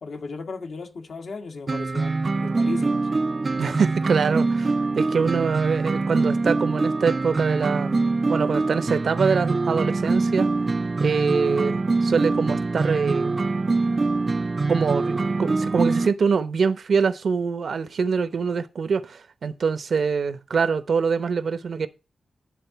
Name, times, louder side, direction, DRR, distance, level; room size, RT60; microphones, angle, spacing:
voice 1, 0.0-3.1, left 4 dB, 65° left, 1.6 m, -36 dB
sound 1, 1.7-16.1, right 3 dB, 35° right, 0.3 m, -24 dB
voice 2, 3.6-8.0 8.3-10.5 11.0-13.3 14.7-21.9, right 5 dB, 65° right, 0.8 m, -24 dB
11.0 x 3.8 x 5.7 m
wide cardioid pair, 100°, 0 cm